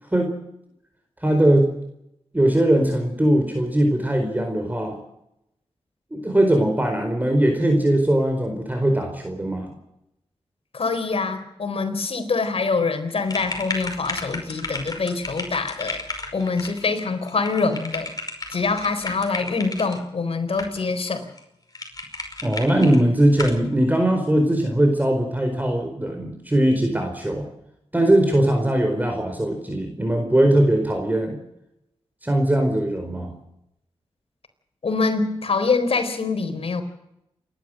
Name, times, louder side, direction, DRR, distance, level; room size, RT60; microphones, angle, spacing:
voice 1, 0.1-0.5 1.2-1.7 2.3-5.0 6.1-9.7 22.4-27.5 27.9-31.4 32.2-33.4, right 1 dB, 15° right, 4 dB, 4.5 m, -20 dB
voice 2, 10.7-16.0 16.3-18.1 18.5-21.3 34.8-36.8, left 4 dB, 65° left, 7 dB, 4.1 m, -24 dB
sound 1, 13.3-20.0 20.6-21.1 21.4-21.5 21.8-23.0 23.4-23.6, left 2 dB, 40° left, 5.4 m, -33 dB
28.0 x 12.0 x 7.8 m, 0.83 s
cardioid pair, 50°, 10 cm